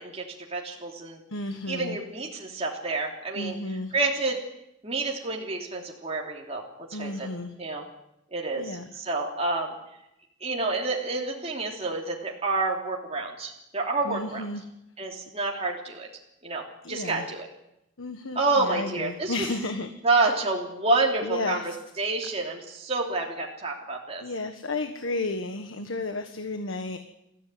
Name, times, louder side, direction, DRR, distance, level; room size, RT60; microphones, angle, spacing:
voice 1, 0.0-1.2 1.7-4.4 4.8-7.3 7.6-7.8 8.3-9.7 10.4-14.4 15.0-16.1 16.4-17.5 18.3-19.4 20.0-24.2, right 3 dB, 30° right, -1 dB, 3.2 m, -29 dB
voice 2, 1.3-2.0 3.3-3.9 6.9-7.5 8.5-8.8 14.0-14.6 16.8-17.2 18.0-19.9 21.2-21.7 24.2-27.0, left 2 dB, 85° left, 8 dB, 1.5 m, -32 dB
21.0 x 15.0 x 9.4 m, 0.85 s
head